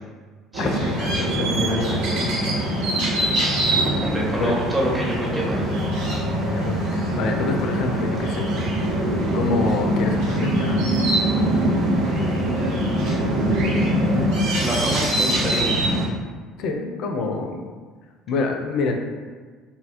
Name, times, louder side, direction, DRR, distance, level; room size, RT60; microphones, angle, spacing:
sound 1, 0.5-16.1, right 1 dB, 70° right, 0.8 m, -23 dB
voice 1, 0.6-2.4 4.4-4.6 6.5-8.5 9.3-10.9 16.6-17.6 18.3-18.9, left 3 dB, 60° left, 3 dB, 0.4 m, -27 dB
voice 2, 3.7-5.8 12.0-13.0 14.6-15.7, equal, 15° right, -4 dB, 0.9 m, -28 dB
3.7 x 2.1 x 2.5 m, 1.5 s
hypercardioid pair, 60°, 0 cm